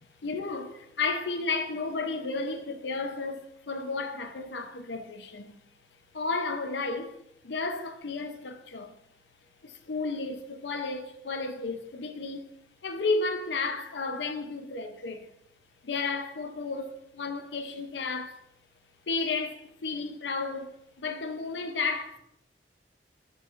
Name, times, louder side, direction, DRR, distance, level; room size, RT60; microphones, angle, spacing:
voice 1, 0.2-5.5 6.1-7.2 7.4-8.9 9.6-12.5 12.8-15.3 15.8-18.4 19.1-20.7 21.0-22.2, left 3 dB, 80° left, 0.7 m, -32 dB
12.0 x 4.8 x 2.5 m
head